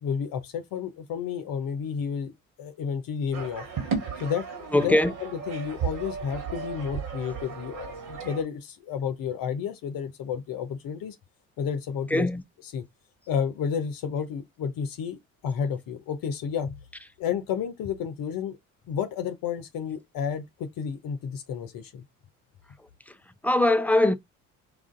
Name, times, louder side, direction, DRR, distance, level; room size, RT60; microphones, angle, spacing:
voice 1, 0.0-2.3 2.6-3.6 4.2-11.2 11.6-12.3 12.6-12.8 13.3-16.7 17.2-18.6 18.9-22.0, left 7 dB, 55° left, 0.8 m, -31 dB
sound 1, 3.3-8.4, right 6 dB, 50° right, 1.7 m, -34 dB
voice 2, 4.7-5.1 12.1-12.4 23.4-24.1, left 1 dB, 5° left, 0.5 m, -21 dB
4.9 x 2.5 x 3.7 m
hypercardioid pair, 55°, 40 cm